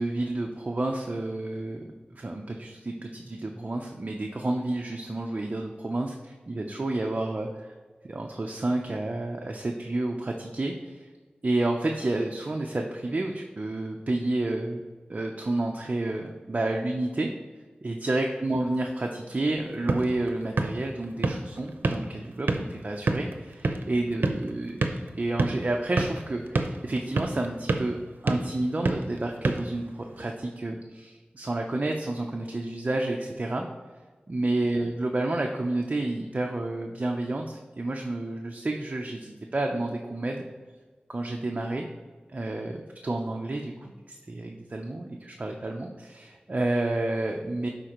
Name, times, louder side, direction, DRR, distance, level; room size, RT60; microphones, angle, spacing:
voice 1, 0.0-7.7 8.0-11.1 11.4-14.8 15.1-17.3 17.8-24.7 25.2-28.0 28.2-33.7 34.3-40.4 41.1-41.9 42.3-47.7, right 2 dB, 40° right, 1 dB, 0.6 m, -30 dB
sound 1, 19.5-30.4, right 3 dB, 80° right, 0.7 m, -31 dB
11.5 x 4.4 x 3.0 m, 1.4 s
wide cardioid pair, 70°, 3 cm